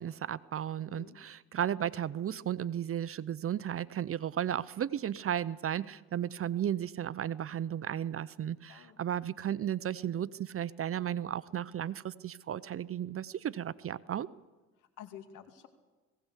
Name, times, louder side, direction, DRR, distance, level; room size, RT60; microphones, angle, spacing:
voice 1, 0.0-14.3, right 10 dB, 45° right, 17 dB, 0.7 m, -34 dB
voice 2, 14.8-15.7, left 9 dB, 90° left, 7 dB, 2.5 m, -50 dB
19.5 x 17.5 x 8.2 m, 1.2 s
cardioid pair, 90°, 30 cm